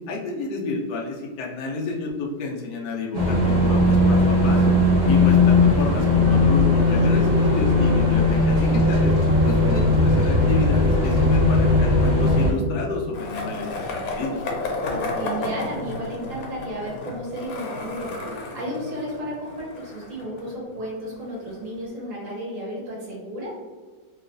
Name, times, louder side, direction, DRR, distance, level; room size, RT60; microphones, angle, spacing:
voice 1, 0.1-4.7 5.0-9.1 9.4-14.4, left 3 dB, 65° left, -1 dB, 1.1 m, -30 dB
sound 1, 3.1-12.5, left 2 dB, 80° right, 0.4 m, -18 dB
Skateboard, 13.1-21.1, left 2 dB, 85° left, 1.4 m, -32 dB
voice 2, 14.8-23.5, equal, 50° right, -4 dB, 1.1 m, -33 dB
3.1 x 3.0 x 2.4 m, 1.4 s
omnidirectional pair, 2.1 m